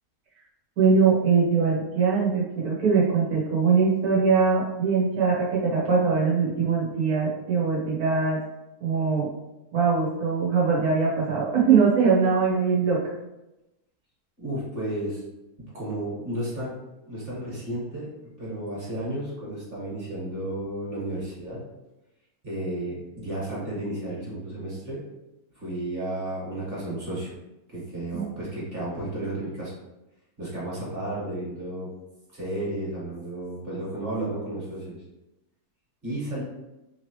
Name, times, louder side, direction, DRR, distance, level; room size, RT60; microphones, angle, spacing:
voice 1, 0.8-8.4 8.8-9.3 9.7-13.2 28.1-28.2, right 5 dB, 75° right, -5 dB, 1.7 m, -22 dB
voice 2, 14.4-15.2 15.6-16.7 17.0-18.1 18.4-21.6 22.4-25.0 25.6-27.3 27.7-29.7 30.4-31.9 32.3-35.0 36.0-36.4, right 1 dB, 40° right, -7 dB, 1.8 m, -32 dB
3.7 x 3.1 x 3.0 m, 0.97 s
omnidirectional pair, 1.6 m